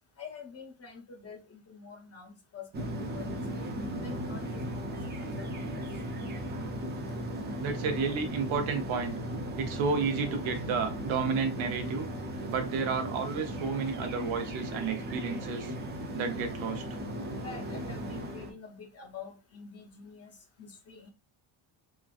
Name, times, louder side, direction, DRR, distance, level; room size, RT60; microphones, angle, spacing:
voice 1, 0.2-3.7 4.0-5.9 7.0-7.1 17.4-21.1, left 5 dB, 30° left, 0.5 m, -47 dB
sound 1, 2.7-18.5, equal, 25° right, 0.4 m, -37 dB
voice 2, 7.6-9.2 9.6-12.1 12.5-15.7 16.1-16.8, right 5 dB, 70° right, 0.7 m, -31 dB
3.0 x 2.4 x 2.3 m
cardioid pair, 150°, 49 cm